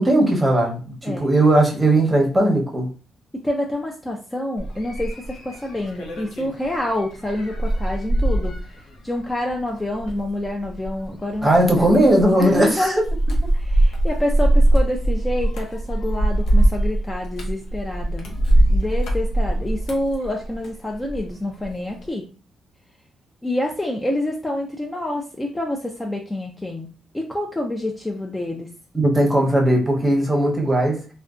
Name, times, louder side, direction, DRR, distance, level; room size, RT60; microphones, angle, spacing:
voice 1, 0.0-2.9 11.4-13.0 28.9-31.0, right 1 dB, 15° right, 0.7 m, -18 dB
voice 2, 3.3-11.5 11.9-12.0 12.4-13.0 13.5-18.3 18.7-22.3 23.4-26.9 27.1-28.7, left 1 dB, 10° left, 0.3 m, -27 dB
sound 1, 4.6-21.3 21.6-22.1, right 1 dB, 90° left, 0.6 m, -22 dB
2.5 x 2.1 x 2.3 m
cardioid pair, 100°, 0 cm